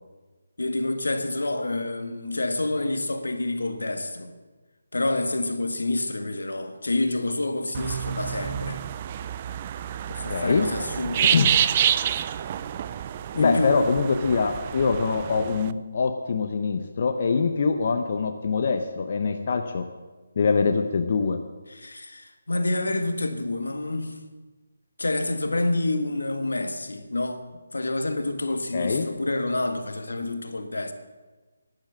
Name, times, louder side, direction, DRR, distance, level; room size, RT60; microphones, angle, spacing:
voice 1, 0.6-4.3 4.9-8.8 10.1-11.4 13.3-13.8 21.7-24.2 25.0-30.9, left 2 dB, 80° left, 1.6 m, -28 dB
sound 1, 7.7-15.7, right 10 dB, 30° right, 0.4 m, -28 dB
voice 2, 10.3-10.7 11.2-11.5 13.3-19.9 20.4-21.4 28.7-29.1, left 5 dB, 45° left, 0.9 m, -24 dB
11.5 x 10.5 x 7.4 m
figure-of-eight pair, 155°, 0 cm